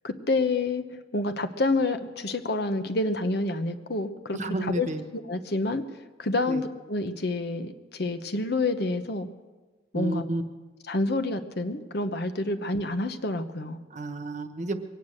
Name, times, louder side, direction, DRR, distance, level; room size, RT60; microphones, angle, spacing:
voice 1, 0.0-0.8 1.1-5.8 6.2-9.3 9.9-10.3 10.9-13.8, left 2 dB, 60° left, 8 dB, 1.0 m, -28 dB
voice 2, 4.3-5.0 6.5-6.6 9.9-10.4 13.9-14.8, right 2 dB, 40° right, 7 dB, 1.2 m, -31 dB
22.5 x 9.4 x 6.4 m, 1.3 s
head